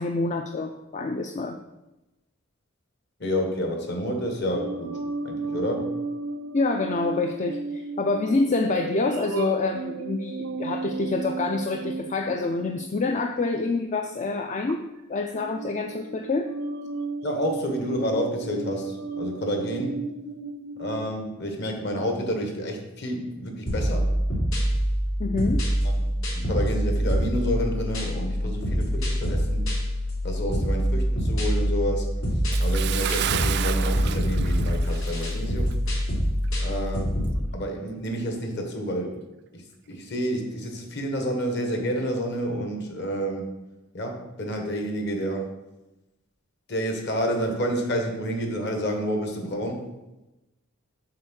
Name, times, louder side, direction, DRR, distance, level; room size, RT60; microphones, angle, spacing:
voice 1, 0.0-1.6 6.5-14.8 15.1-16.5 25.2-25.6, left 3 dB, 35° left, 5 dB, 0.4 m, -27 dB
voice 2, 3.2-5.0 5.2-5.9 17.2-20.0 20.8-24.1 25.8-26.0 26.3-29.6 30.2-32.1 32.6-35.8 36.6-39.2 39.5-39.6 39.9-43.5 43.9-45.5 46.7-49.8, equal, 55° left, 3 dB, 1.5 m, -29 dB
sound 1, 4.5-13.9 14.7-15.0 15.3-21.0, right 3 dB, 90° right, 0.7 m, -34 dB
sound 2, 23.7-37.4, equal, 80° left, 3.0 m, -25 dB
Bathtub (filling or washing) / Splash splatter, 32.5-35.4 35.7-35.9 36.4-36.5, right 11 dB, 50° right, 0.3 m, -31 dB
7.6 x 4.5 x 6.3 m, 1.0 s
head